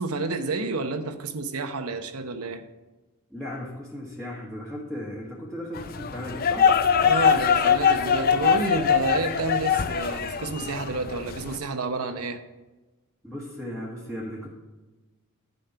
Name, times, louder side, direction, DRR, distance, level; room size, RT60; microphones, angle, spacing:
voice 1, 0.0-2.6 7.0-12.4, right 3 dB, 80° right, 8 dB, 0.9 m, -30 dB
voice 2, 3.3-6.7 13.2-14.5, left 1 dB, 5° left, -6 dB, 1.4 m, -36 dB
sound 1, 5.7-11.6, left 7 dB, 40° left, 0.5 m, -23 dB
11.0 x 5.5 x 5.7 m, 1.2 s
head